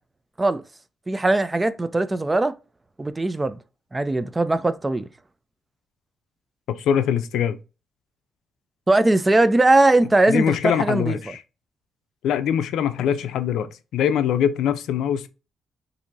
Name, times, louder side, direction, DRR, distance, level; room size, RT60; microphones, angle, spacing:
voice 1, 1.1-2.6 3.0-3.6 3.9-5.1 8.9-11.2, right 2 dB, 20° right, 0.4 m, -20 dB
voice 2, 6.7-7.6 10.3-11.4 12.2-15.3, left 9 dB, 80° left, 0.4 m, -23 dB
4.3 x 2.6 x 2.5 m
cardioid pair, 90°, 0 cm